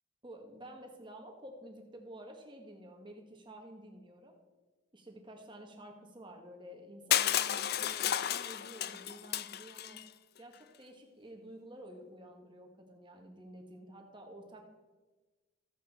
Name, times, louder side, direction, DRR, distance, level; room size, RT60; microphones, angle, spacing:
voice 1, 0.2-4.4 4.9-10.0 10.4-14.7, right 1 dB, 25° right, 2 dB, 1.8 m, -51 dB
Crushing, 7.1-10.0, left 11 dB, 50° left, 0.4 m, -32 dB
14.5 x 8.6 x 4.5 m, 1.2 s
head